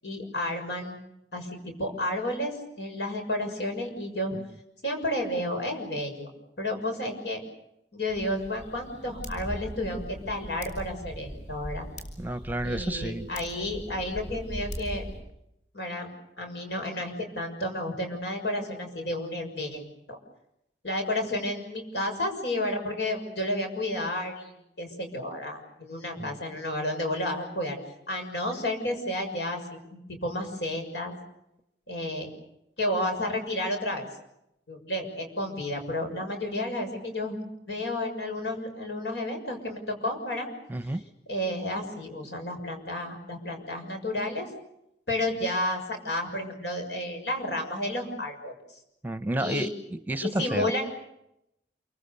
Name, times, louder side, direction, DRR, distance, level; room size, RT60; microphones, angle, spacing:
voice 1, 0.0-1.0 1.3-4.3 4.8-6.3 6.6-7.4 7.9-11.9 12.6-15.1 15.7-16.1 16.4-20.2 20.8-24.5 24.8-27.8 28.1-29.6 29.9-31.1 31.9-32.3 32.8-34.1 34.7-40.5 41.3-44.5 45.1-48.5 49.4-49.7 50.2-50.9, left 1 dB, 80° left, 4 dB, 6.7 m, -31 dB
sound 1, 8.1-15.2, equal, 45° left, 7.6 m, -40 dB
voice 2, 12.2-13.3 26.2-26.3 40.7-41.0 49.0-50.7, right 1 dB, 10° right, 10 dB, 0.9 m, -31 dB
28.5 x 25.0 x 7.0 m, 0.82 s
head